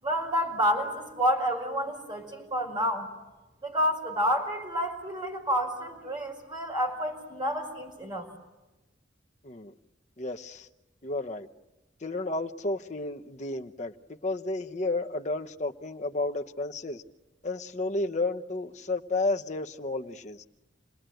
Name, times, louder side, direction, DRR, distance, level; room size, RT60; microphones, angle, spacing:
voice 1, 0.0-3.1 3.6-8.3, equal, 25° right, 5.2 m, -29 dB
voice 2, 10.2-10.7 11.0-11.5 12.0-13.9 14.2-17.0 17.4-20.4, left 2 dB, 40° left, 0.9 m, -32 dB
28.5 x 20.0 x 9.1 m
head